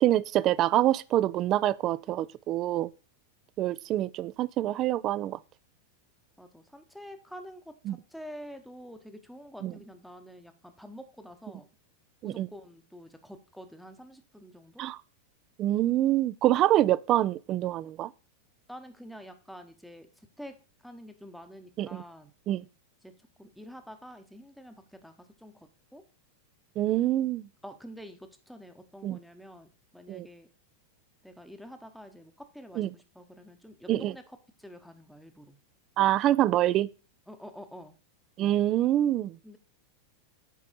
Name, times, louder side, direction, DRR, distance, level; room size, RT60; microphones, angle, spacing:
voice 1, 0.0-2.9 3.6-5.4 7.9-8.0 9.6-9.7 12.2-12.5 14.8-15.0 15.6-18.1 21.8-22.0 22.5-22.6 26.8-27.4 29.0-29.2 30.1-30.3 32.8-32.9 33.9-34.1 36.0-36.9 38.4-39.3, right 13 dB, 35° right, 0.3 m, -25 dB
voice 2, 6.4-11.7 12.2-14.8 18.7-20.1 20.4-20.6 20.8-22.3 23.0-23.1 23.4-26.0 27.6-30.5 31.2-35.6 37.3-38.0 39.4-39.6, equal, ahead, 0.9 m, -47 dB
8.4 x 5.2 x 4.1 m
figure-of-eight pair, 90°, 0 cm